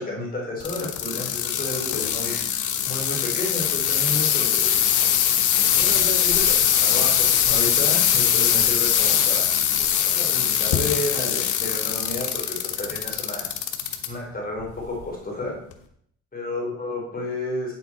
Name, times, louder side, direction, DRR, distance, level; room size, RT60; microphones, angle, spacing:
voice 1, 0.0-4.8 5.8-9.5 10.0-13.5 14.0-15.5 16.3-17.7, left 1 dB, 30° left, -2 dB, 3.2 m, -31 dB
sound 1, 0.6-14.1 14.6-15.0 15.7-15.8, left 9 dB, 80° left, 1.1 m, -22 dB
9.3 x 7.3 x 4.1 m, 0.67 s
cardioid pair, 90°, 30 cm